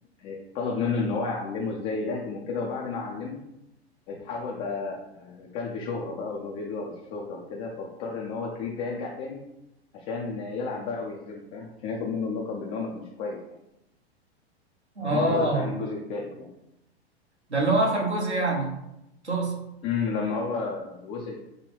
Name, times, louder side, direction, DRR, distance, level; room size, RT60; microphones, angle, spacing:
voice 1, 0.2-3.4 4.1-9.4 9.9-13.4 15.0-16.5 19.8-21.4, left 4 dB, 20° left, -2 dB, 0.4 m, -32 dB
voice 2, 15.0-15.7 17.5-18.7 19.2-19.5, right 2 dB, 80° right, -3 dB, 1.3 m, -24 dB
5.3 x 2.2 x 3.3 m, 0.86 s
figure-of-eight pair, 95°, 33 cm